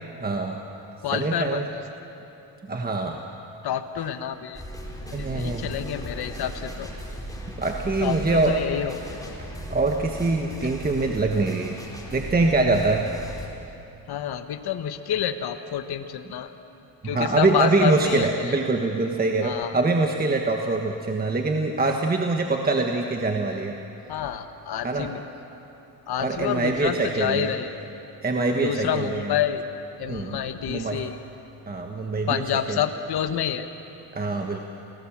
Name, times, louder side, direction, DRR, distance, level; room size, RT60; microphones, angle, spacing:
voice 1, 0.2-0.6 1.1-1.6 2.7-3.2 5.1-5.7 7.6-8.6 9.7-11.8 12.1-13.0 17.0-23.8 24.8-25.1 26.2-27.5 28.2-29.3 30.1-30.4 30.7-31.0 31.7-32.4 32.7-32.8 34.1-34.6, right 3 dB, 20° right, 2 dB, 1.5 m, -24 dB
voice 2, 1.0-1.6 3.6-4.6 5.1-6.9 8.0-9.2 14.1-16.5 17.0-18.5 19.4-19.8 24.1-25.2 26.1-27.8 28.6-29.6 30.0-31.2 32.3-33.7, left 9 dB, 60° left, 8 dB, 1.4 m, -28 dB
sound 1, 4.5-13.5, equal, 10° left, 4.1 m, -37 dB
28.5 x 18.5 x 7.4 m, 2.9 s
cardioid pair, 110°, 44 cm